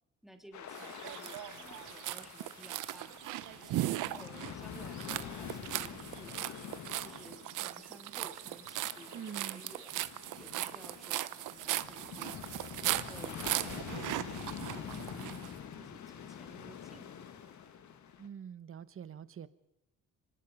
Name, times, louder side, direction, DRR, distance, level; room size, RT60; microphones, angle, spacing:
voice 1, 0.2-3.1 3.6-6.6 7.0-10.0 10.3-17.5, equal, ahead, 5 dB, 3.0 m, -55 dB
sound 1, 0.5-18.3, left 8 dB, 70° left, 2.1 m, -46 dB
sound 2, 0.7-15.5, right 15 dB, 90° right, 0.9 m, -38 dB
voice 2, 9.1-9.6 18.2-19.5, right 8 dB, 45° right, 15 dB, 1.1 m, -45 dB
25.5 x 19.0 x 5.4 m, 0.84 s
cardioid pair, 90°, 30 cm